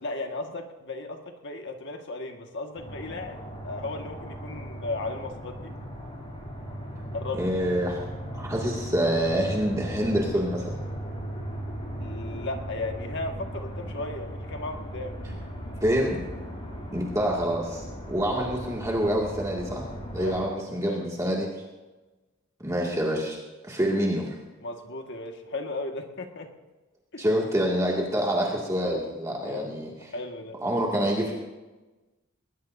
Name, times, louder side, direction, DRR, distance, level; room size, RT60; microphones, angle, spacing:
voice 1, 0.0-5.8 7.1-7.5 12.0-15.2 20.2-20.6 20.9-21.4 24.6-26.5 27.1-27.3 29.4-29.8 30.1-30.6, left 2 dB, 60° left, 3 dB, 1.7 m, -36 dB
sound 1, 2.7-20.4, equal, 25° left, 5.3 m, -37 dB
voice 2, 7.3-8.0 8.3-10.7 15.8-16.2 16.9-19.9 20.1-21.5 22.6-23.4 23.6-24.4 27.2-29.9 30.6-31.3, equal, 15° right, -3 dB, 2.2 m, -26 dB
20.0 x 19.5 x 2.7 m, 1.1 s
head